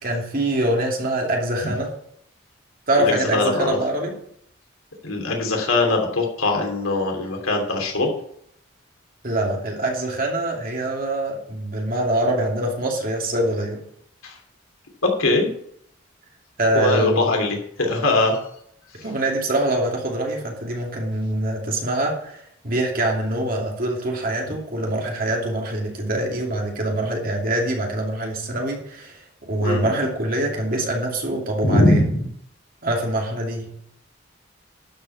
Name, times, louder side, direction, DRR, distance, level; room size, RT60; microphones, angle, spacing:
voice 1, 0.0-1.9 2.9-4.1 9.2-13.8 16.6-17.3 19.0-29.2 29.5-32.1 32.8-33.7, right 1 dB, 45° right, 0 dB, 2.8 m, -24 dB
voice 2, 3.0-3.8 5.0-8.1 14.2-14.4 15.0-15.5 16.7-18.4 29.6-29.9 31.6-32.1, left 2 dB, 90° left, 2 dB, 2.9 m, -21 dB
12.0 x 5.5 x 7.2 m, 0.69 s
head